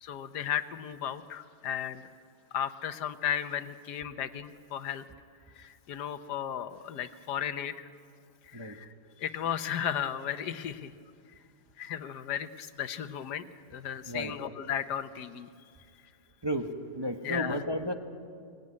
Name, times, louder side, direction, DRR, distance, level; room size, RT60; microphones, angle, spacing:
voice 1, 0.0-2.0 2.5-5.0 5.6-7.9 8.5-8.9 9.2-10.9 11.8-13.4 13.7-15.5 17.2-17.6, left 9 dB, 90° left, 11 dB, 1.5 m, -35 dB
voice 2, 16.4-17.9, equal, 20° right, 4 dB, 0.9 m, -33 dB
22.5 x 18.5 x 9.6 m, 2.3 s
omnidirectional pair, 1.7 m